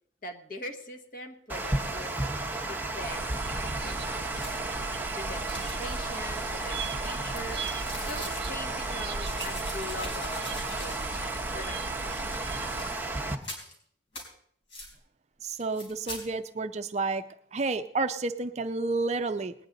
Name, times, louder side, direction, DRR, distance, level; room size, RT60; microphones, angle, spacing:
voice 1, 0.2-2.2 2.5-3.4 3.8-4.5 5.1-7.6 8.0-12.8, left 1 dB, 45° left, 6 dB, 1.1 m, -42 dB
Water, 1.5-13.4, right 2 dB, 10° right, 0.8 m, -33 dB
sound 1, 3.0-13.0, right 4 dB, 60° right, 0.8 m, -38 dB
sound 2, 4.3-4.8 5.5-6.1 6.6-8.6 9.2-11.3 11.6-11.7 12.7-13.0 13.4-13.7 14.1-14.3 14.7-14.9 15.6-16.2, left 1 dB, 90° left, 4.0 m, -43 dB
voice 2, 15.4-17.2 17.5-19.5, right 3 dB, 35° right, 8 dB, 0.4 m, -30 dB
20.0 x 9.6 x 3.9 m, 0.65 s
head